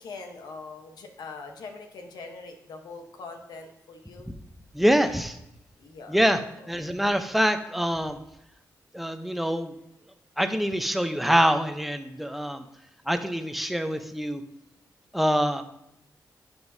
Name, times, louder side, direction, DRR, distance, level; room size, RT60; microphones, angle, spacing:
voice 1, 0.0-4.3 5.8-6.2 6.6-6.7, left 4 dB, 85° left, 5 dB, 1.0 m, -42 dB
voice 2, 4.7-5.4 6.1-6.4 6.7-8.2 8.9-9.7 10.4-12.6 13.1-14.4 15.1-15.6, equal, ahead, 8 dB, 0.7 m, -25 dB
11.0 x 5.3 x 2.7 m, 0.82 s
cardioid pair, 70°, 7 cm